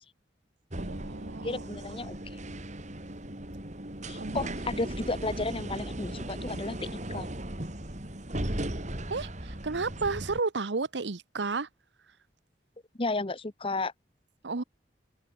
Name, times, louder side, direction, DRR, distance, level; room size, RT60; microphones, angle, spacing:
sound 1, 0.7-10.4, right 1 dB, 40° right, 3.7 m, -37 dB
voice 1, 0.8-1.6 4.2-4.5 9.1-11.7 14.4-14.6, right 4 dB, 80° right, 0.9 m, -32 dB
voice 2, 1.4-2.1 4.1-7.3 13.0-13.9, left 2 dB, 30° left, 1.2 m, -33 dB
head